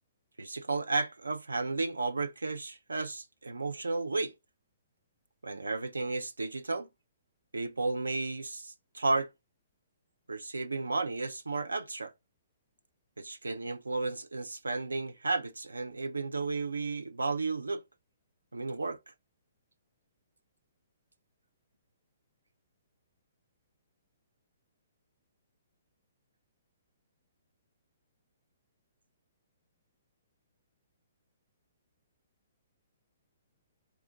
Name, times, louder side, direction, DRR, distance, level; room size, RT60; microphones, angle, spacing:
voice 1, 0.4-4.3 5.4-6.9 7.5-9.3 10.3-12.1 13.2-17.8 18.5-19.0, right 3 dB, 90° right, 0.5 m, -33 dB
3.6 x 2.4 x 3.7 m
hypercardioid pair, 130°, 0 cm